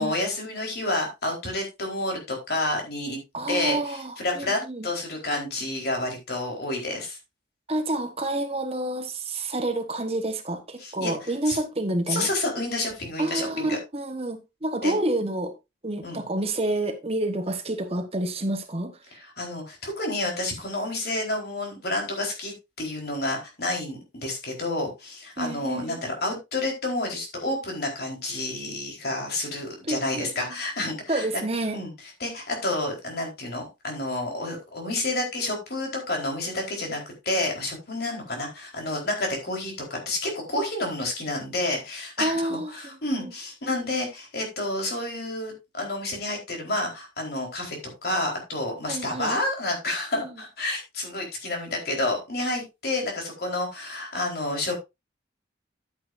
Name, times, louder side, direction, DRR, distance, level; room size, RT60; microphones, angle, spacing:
voice 1, 0.0-3.2 3.5-7.2 10.8-11.6 12.1-13.8 14.8-14.9 16.0-16.2 19.2-31.3 31.7-31.9 32.2-54.8, left 2 dB, 55° left, 4.2 m, -29 dB
voice 2, 3.3-4.9 7.7-12.3 13.2-15.5 15.8-18.9 25.4-26.0 29.9-30.3 31.1-31.8 42.2-43.3 48.9-49.4 50.1-50.3, right 1 dB, 35° right, 1.2 m, -29 dB
10.5 x 9.5 x 2.6 m
head